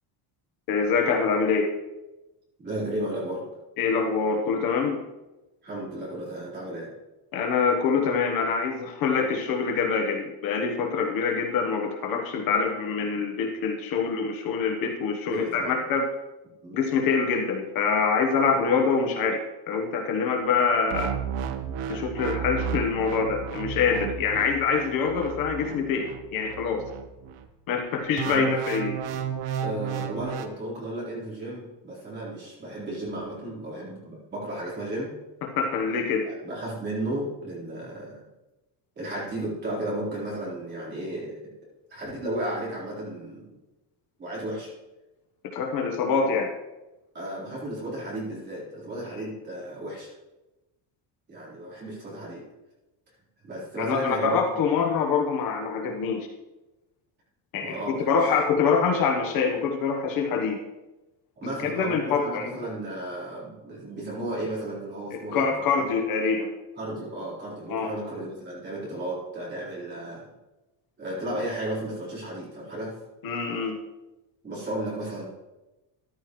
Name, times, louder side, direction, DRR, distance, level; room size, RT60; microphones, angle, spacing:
voice 1, 0.7-1.7 3.8-5.0 7.3-16.1 16.7-19.4 19.7-21.1 21.9-26.8 27.7-29.0 35.4-36.3 45.5-46.5 53.8-56.3 57.5-60.6 61.6-62.5 65.1-66.5 67.7-67.9 73.2-73.8, left 5 dB, 50° left, 3 dB, 1.2 m, -25 dB
voice 2, 2.6-3.5 5.6-6.9 15.3-15.8 16.6-16.8 28.2-28.5 29.6-35.1 36.2-38.3 39.0-41.4 41.9-43.5 44.2-44.7 47.1-50.1 51.3-52.4 53.4-54.4 57.6-58.3 61.4-65.9 66.8-70.3 71.0-72.9 74.4-75.3, right 1 dB, 25° right, -6 dB, 4.0 m, -34 dB
sound 1, 20.9-27.4 28.2-30.5, right 8 dB, 75° right, 1.0 m, -33 dB
13.5 x 11.5 x 3.1 m, 1.0 s
cardioid pair, 180°, 43 cm